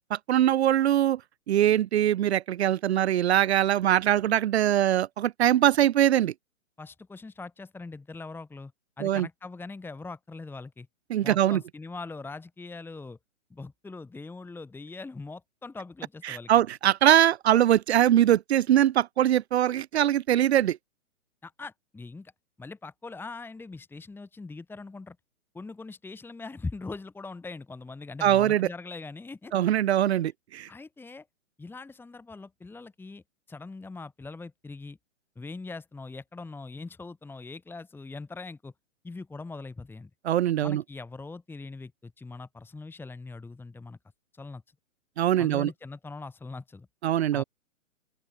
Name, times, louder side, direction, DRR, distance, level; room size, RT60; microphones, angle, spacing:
voice 1, 0.1-1.2 1.5-6.3 9.0-9.3 11.1-11.6 16.2-20.8 28.2-28.7 29.5-30.7 40.2-40.8 45.2-45.7 47.0-47.4, right 11 dB, 50° right, 2.2 m, -22 dB
voice 2, 6.8-8.7 9.0-10.9 11.2-13.2 13.5-16.5 21.4-22.3 22.6-25.2 25.5-29.5 30.7-31.3 31.6-33.2 33.5-35.0 35.4-38.7 39.0-40.1 40.6-44.0 44.3-44.6 45.4-46.9 47.3-47.4, left 3 dB, 5° left, 2.5 m, -41 dB
open air
hypercardioid pair, 130°, 40 cm